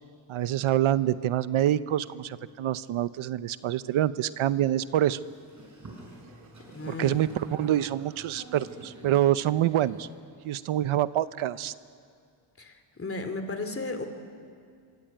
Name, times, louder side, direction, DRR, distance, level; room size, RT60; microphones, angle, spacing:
voice 1, 0.3-5.2 6.8-10.1 10.4-11.7, right 12 dB, 80° right, 15 dB, 0.8 m, -26 dB
Boat Water vehicle, 5.2-10.2, right 2 dB, 35° right, 7.6 m, -48 dB
voice 2, 6.7-7.2 12.6-14.1, left 3 dB, 25° left, 7 dB, 2.9 m, -34 dB
25.0 x 24.5 x 9.2 m, 2.3 s
cardioid pair, 125°, 48 cm